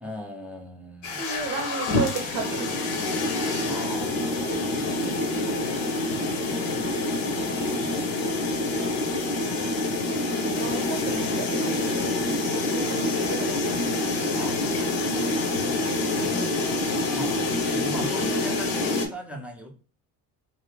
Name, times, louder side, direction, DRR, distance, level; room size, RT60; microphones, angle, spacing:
voice 1, 0.0-1.2 3.6-4.6 6.6-7.1 7.6-8.5 14.3-15.7 16.1-16.5 17.0-19.7, equal, 5° right, 1 dB, 0.6 m, -40 dB
sound 1, 1.0-19.1, left 2 dB, 65° left, 0.8 m, -26 dB
voice 2, 1.2-3.2 6.6-7.2 9.8-14.0 16.3-16.6, right 5 dB, 50° right, 2 dB, 0.8 m, -35 dB
2.6 x 2.3 x 3.2 m, 0.37 s
hypercardioid pair, 60°, 47 cm